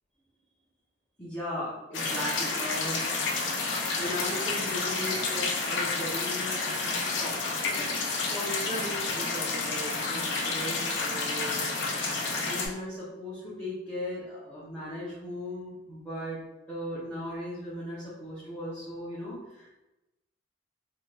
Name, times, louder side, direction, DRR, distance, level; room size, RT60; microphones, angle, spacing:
voice 1, 1.2-3.4 3.9-7.9 8.3-11.6 12.3-19.8, equal, 15° left, -10 dB, 0.9 m, -37 dB
sound 1, 1.9-12.7, left 3 dB, 80° left, 0.6 m, -30 dB
3.4 x 2.9 x 2.4 m, 0.99 s
head